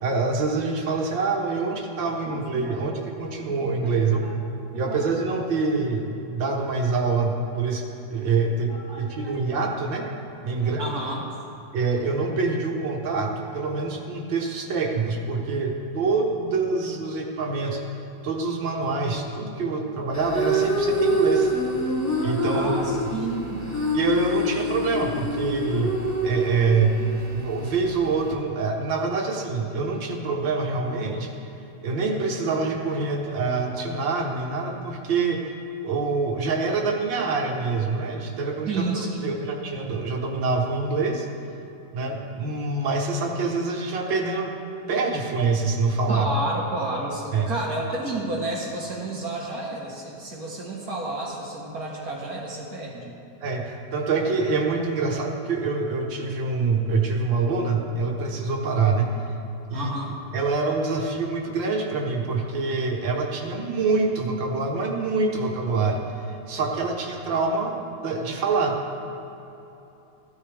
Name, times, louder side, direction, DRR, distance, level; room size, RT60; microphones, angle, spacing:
voice 1, 0.0-4.4 4.8-10.1 10.4-11.0 11.7-17.8 18.2-21.5 22.2-23.1 23.9-26.0 26.2-27.0 27.3-31.3 31.8-35.4 35.8-38.9 39.2-41.3 41.9-44.5 44.9-46.3 47.3-47.5 53.4-59.1 59.7-59.9 60.3-68.8, right 4 dB, 75° right, 1 dB, 2.0 m, -25 dB
voice 2, 2.3-2.9 3.4-3.9 4.2-4.3 4.8-5.1 8.7-9.6 10.6-11.3 22.5-23.7 38.7-39.4 46.1-53.2 59.7-60.1, right 2 dB, 55° right, -2 dB, 1.8 m, -31 dB
sound 1, 20.1-28.3, equal, 10° left, 0.9 m, -26 dB
15.5 x 12.5 x 3.5 m, 2.9 s
omnidirectional pair, 2.1 m